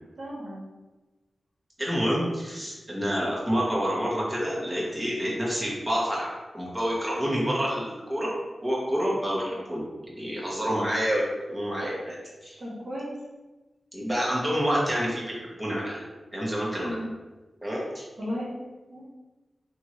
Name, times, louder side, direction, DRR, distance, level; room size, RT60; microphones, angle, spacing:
voice 1, 0.2-0.6 12.6-13.1 16.8-17.1 18.2-18.5 18.9-19.1, equal, 75° right, -6 dB, 1.3 m, -34 dB
voice 2, 1.8-8.3 8.6-11.2 11.5-12.2 12.4-12.6 13.9-16.0 16.3-17.0 17.6-18.0, equal, 10° right, -6 dB, 1.4 m, -28 dB
3.5 x 2.9 x 3.0 m, 1.2 s
cardioid pair, 50°, 0 cm